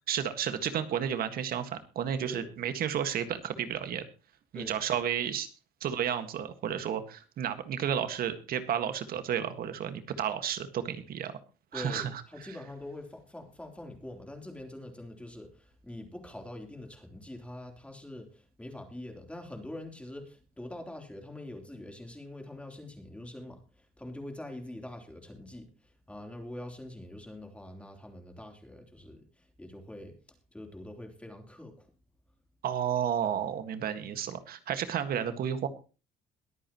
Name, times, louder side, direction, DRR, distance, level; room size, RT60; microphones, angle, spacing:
voice 1, 0.1-4.1 4.5-5.5 5.8-11.3 11.7-12.2 32.6-35.7, right 9 dB, 60° right, 9 dB, 1.8 m, -32 dB
voice 2, 11.7-23.6 24.0-25.7 26.1-29.2 29.6-30.1 30.5-31.9, left 1 dB, 5° left, 4 dB, 3.6 m, -44 dB
22.5 x 8.9 x 3.1 m, 0.33 s
cardioid pair, 110°, 17 cm